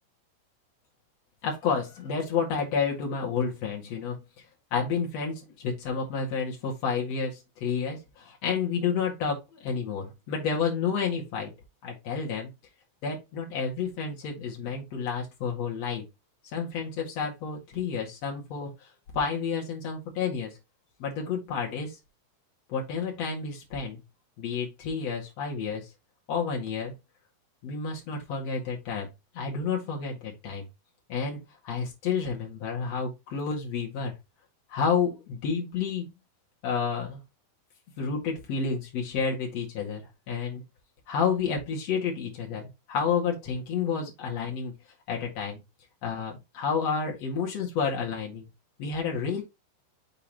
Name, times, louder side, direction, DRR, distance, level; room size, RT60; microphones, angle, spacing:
voice 1, 1.4-4.2 4.7-11.5 11.8-12.5 13.0-16.0 16.4-18.9 19.1-20.6 21.0-22.0 22.7-24.0 24.4-25.9 26.3-26.9 27.6-29.1 29.3-30.7 31.1-34.1 34.7-36.1 36.6-37.2 38.0-40.0 40.3-40.6 41.1-44.7 45.1-45.6 46.0-48.5 48.8-49.4, left 6 dB, 50° left, 2.1 m, -30 dB
7.2 x 5.6 x 3.0 m
omnidirectional pair, 6.0 m